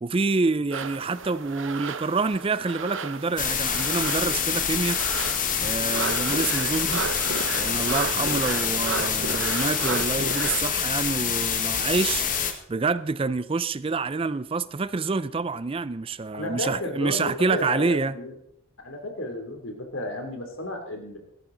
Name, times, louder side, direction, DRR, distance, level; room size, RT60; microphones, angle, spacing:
voice 1, 0.0-5.0 5.6-7.0 7.6-18.1, right 4 dB, 25° right, 0.4 m, -27 dB
sound 1, 0.7-10.6, right 5 dB, 70° right, 0.9 m, -33 dB
sound 2, 3.4-12.5, left 7 dB, 40° left, 1.5 m, -26 dB
voice 2, 16.3-18.3 18.8-21.2, left 1 dB, 80° left, 3.0 m, -33 dB
15.5 x 13.0 x 3.9 m
head